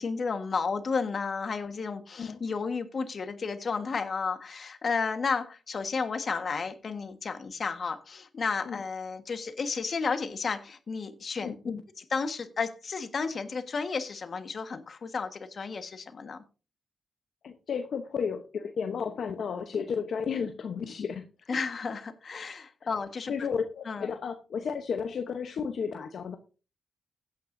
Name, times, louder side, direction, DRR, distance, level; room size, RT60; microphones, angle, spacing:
voice 1, 0.0-11.6 12.0-16.4 21.5-23.3 23.8-24.1, left 5 dB, 55° left, 9 dB, 1.5 m, -32 dB
voice 2, 11.4-11.8 17.4-21.6 23.3-26.4, left 6 dB, 70° left, 6 dB, 0.9 m, -33 dB
16.5 x 9.0 x 2.7 m, 0.34 s
cardioid pair, 65°, 0 cm